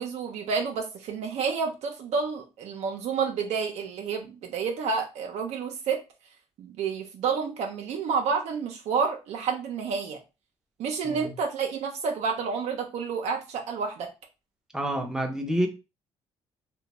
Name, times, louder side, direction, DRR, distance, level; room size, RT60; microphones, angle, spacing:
voice 1, 0.0-6.0 6.6-10.2 10.8-14.1, right 5 dB, 70° right, 0.5 m, -29 dB
voice 2, 14.7-15.7, equal, 5° right, 0.6 m, -28 dB
2.4 x 2.2 x 2.9 m
cardioid pair, 110°, 12 cm